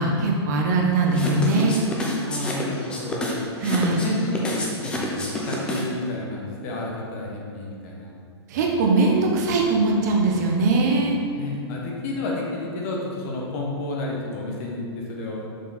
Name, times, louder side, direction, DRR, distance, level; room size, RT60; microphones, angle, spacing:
voice 1, 0.0-1.8 3.6-4.0 8.5-11.2, right 3 dB, 40° right, 0 dB, 0.7 m, -21 dB
sound 1, 1.1-6.0, left 1 dB, 5° left, 0.5 m, -29 dB
voice 2, 2.2-3.4 3.9-8.2 11.3-15.5, left 2 dB, 35° left, -2 dB, 1.0 m, -31 dB
6.3 x 4.1 x 4.1 m, 2.3 s
hypercardioid pair, 165°, 14 cm